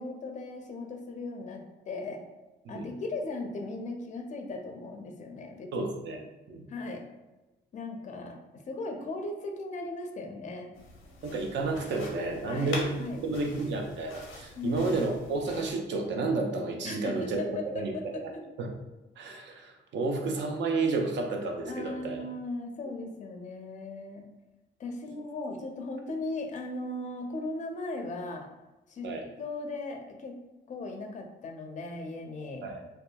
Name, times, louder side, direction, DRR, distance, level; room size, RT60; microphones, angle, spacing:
voice 1, 0.0-2.2 2.7-5.9 6.7-7.1 7.7-10.7 12.5-13.2 14.5-15.0 16.8-18.4 21.7-24.3 24.8-28.5 28.9-29.1 29.4-30.3 30.7-32.6, left 2 dB, 40° left, 3 dB, 0.5 m, -37 dB
voice 2, 5.7-6.2 6.5-6.7 11.2-18.2 18.6-18.7 19.2-22.2 29.0-29.2 32.6-32.8, right 3 dB, 65° right, 2 dB, 0.5 m, -31 dB
sound 1, 10.7-15.7, left 2 dB, 90° left, 0.6 m, -44 dB
2.8 x 2.2 x 2.2 m, 1.1 s
cardioid pair, 90°, 20 cm